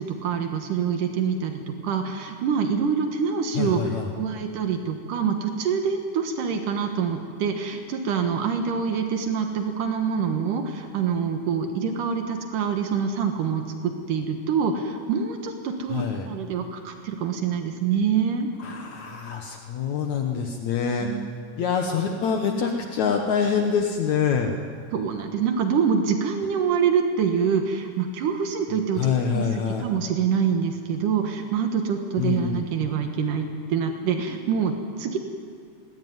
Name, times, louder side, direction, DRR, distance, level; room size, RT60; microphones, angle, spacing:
voice 1, 0.0-18.5 21.0-21.3 24.9-35.2, right 6 dB, 80° right, 5 dB, 3.0 m, -26 dB
voice 2, 3.5-4.1 15.9-16.3 18.6-21.1 21.6-24.5 29.0-29.9 32.2-32.6, left 6 dB, 65° left, 3 dB, 2.5 m, -25 dB
22.5 x 19.5 x 9.5 m, 2.3 s
omnidirectional pair, 3.7 m